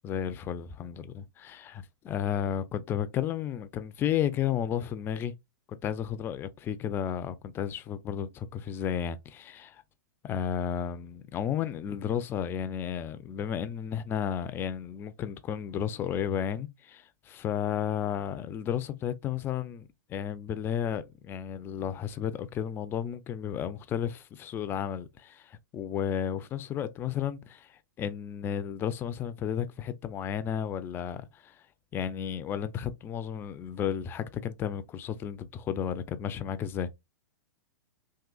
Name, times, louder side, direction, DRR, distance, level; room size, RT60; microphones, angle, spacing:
voice 1, 0.0-5.3 5.7-9.8 10.2-31.6 31.9-36.9, left 9 dB, 20° left, 0.3 m, -33 dB
3.7 x 2.6 x 2.3 m
hypercardioid pair, 135°, 11 cm